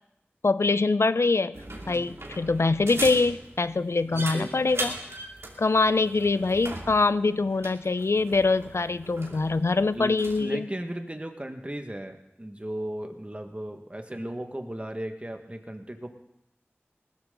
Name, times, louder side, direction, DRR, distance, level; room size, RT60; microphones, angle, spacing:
voice 1, 0.4-1.6 1.9-5.0 5.6-10.7, left 3 dB, 85° left, 15 dB, 0.5 m, -24 dB
sound 1, 1.5-10.4, right 1 dB, 80° right, 2.5 m, -39 dB
voice 2, 4.0-4.5 9.9-16.1, right 1 dB, 30° right, 5 dB, 1.7 m, -36 dB
19.5 x 13.5 x 3.9 m, 0.83 s
wide cardioid pair, 45°, 4 cm